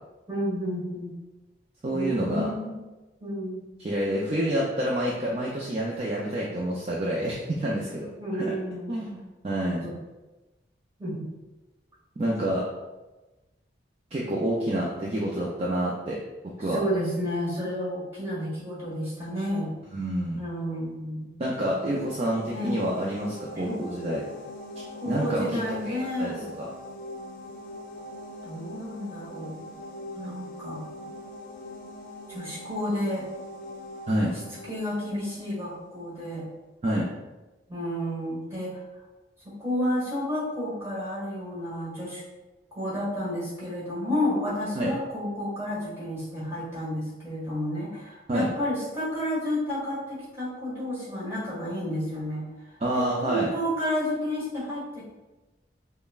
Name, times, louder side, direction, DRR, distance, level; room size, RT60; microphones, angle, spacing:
voice 1, 0.3-1.1 1.9-2.7 3.2-3.6 8.2-9.0 9.8-9.9 11.0-11.3 16.6-19.7 20.3-21.3 22.5-22.8 23.5-24.0 24.9-26.5 28.4-29.6 30.1-30.8 32.3-33.3 34.6-36.5 37.7-38.8 39.4-42.2 42.7-52.4 52.9-55.0, equal, 15° right, -7 dB, 1.5 m, -31 dB
voice 2, 1.8-2.5 3.8-8.1 8.3-8.5 8.9-9.8 12.2-12.6 14.1-16.2 16.6-16.8 19.9-20.4 21.4-24.2 25.0-26.7 34.1-34.3 36.8-37.1 44.8-44.9 48.3-48.5 52.8-53.5, right 1 dB, 35° right, -4 dB, 0.4 m, -28 dB
sound 1, 21.5-36.2, left 1 dB, 50° left, 0.4 m, -42 dB
5.2 x 2.1 x 2.3 m, 1.1 s
head